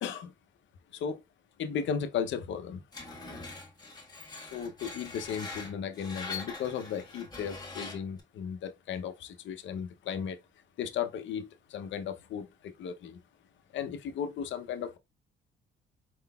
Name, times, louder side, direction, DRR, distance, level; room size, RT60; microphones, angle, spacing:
voice 1, 0.0-0.3 0.9-1.2 1.6-2.8 4.4-10.4 10.8-13.2 13.7-15.0, left 7 dB, 70° left, 0.7 m, -35 dB
Screech, 2.9-8.2, left 4 dB, 20° left, 1.5 m, -43 dB
4.6 x 3.8 x 2.2 m
cardioid pair, 90°, 20 cm